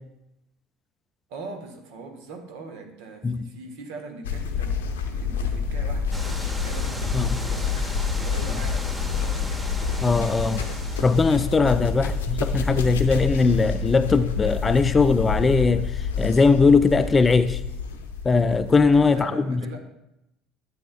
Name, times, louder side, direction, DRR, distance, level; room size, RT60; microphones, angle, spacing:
voice 1, 1.3-4.7 5.0-9.5 12.0-12.4 19.1-19.8, right 3 dB, 60° right, 4 dB, 1.2 m, -41 dB
sound 1, 4.2-19.2, left 5 dB, 70° left, 0.7 m, -28 dB
sound 2, 6.1-11.5, right 1 dB, 10° right, 1.0 m, -36 dB
voice 2, 10.0-10.6 11.0-15.9 16.2-17.6 18.2-19.6, left 4 dB, 25° left, 11 dB, 0.4 m, -20 dB
12.0 x 8.6 x 2.2 m, 0.86 s
figure-of-eight pair, 60°, 0 cm